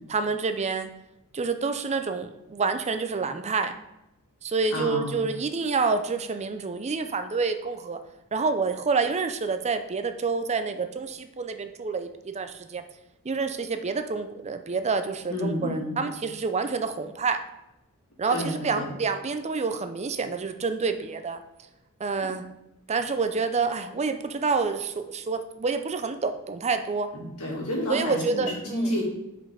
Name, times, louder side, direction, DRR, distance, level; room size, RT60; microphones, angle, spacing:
voice 1, 0.1-0.9 1.3-3.7 4.4-8.0 8.3-12.8 13.2-17.4 18.2-21.4 22.0-22.5 22.9-27.1 27.9-28.8, right 4 dB, 30° right, 8 dB, 0.5 m, -28 dB
voice 2, 4.7-5.2 15.3-15.9 18.3-18.9 27.1-29.0, left 1 dB, 90° left, -3 dB, 2.5 m, -30 dB
5.5 x 5.2 x 5.0 m, 0.89 s
head